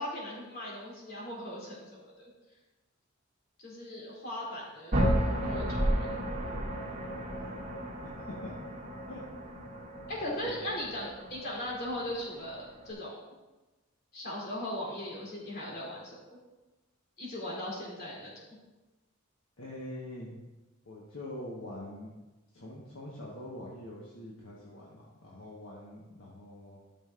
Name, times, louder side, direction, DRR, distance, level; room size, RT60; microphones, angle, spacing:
voice 1, 0.0-2.3 3.6-6.2 10.1-13.2 14.1-16.2 17.2-18.3, left 1 dB, 50° left, -5 dB, 3.0 m, -38 dB
sound 1, 4.9-12.9, equal, 40° right, 2.0 m, -33 dB
voice 2, 7.2-7.6 8.0-8.5 9.1-9.2 10.4-10.5 19.6-20.4 20.8-22.1 22.5-26.8, left 1 dB, 70° left, -5 dB, 1.3 m, -44 dB
13.0 x 6.3 x 2.5 m, 1.1 s
head